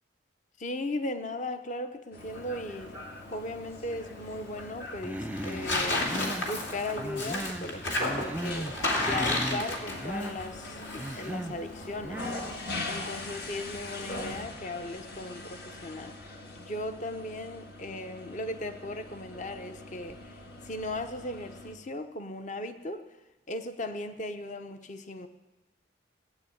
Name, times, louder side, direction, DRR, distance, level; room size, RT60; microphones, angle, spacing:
voice 1, 0.6-3.0 3.3-12.5 12.9-23.0 23.5-25.3, left 1 dB, 40° left, 9 dB, 0.7 m, -37 dB
sound 1, 2.1-21.7, left 2 dB, 55° left, 1.8 m, -43 dB
Tearing, 2.2-14.4, left 2 dB, 70° left, 2.7 m, -34 dB
Human voice, 5.0-5.7 6.0-6.5 7.0-7.7 8.0-8.7 9.0-9.7 10.0-10.4 11.0-11.6 12.0-12.5, right 1 dB, 10° right, 0.4 m, -36 dB
17.0 x 9.0 x 8.6 m, 1.1 s
head